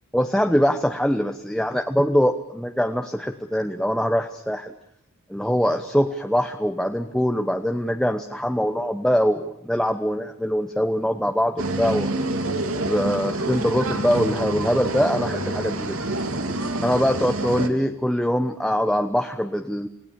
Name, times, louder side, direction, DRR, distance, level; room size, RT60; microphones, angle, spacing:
voice 1, 0.1-4.7 5.3-12.1 12.9-16.0 16.8-19.9, equal, 5° left, 5 dB, 0.9 m, -23 dB
sound 1, 11.6-17.7, right 2 dB, 80° right, 2.7 m, -27 dB
29.5 x 18.0 x 7.0 m, 0.76 s
head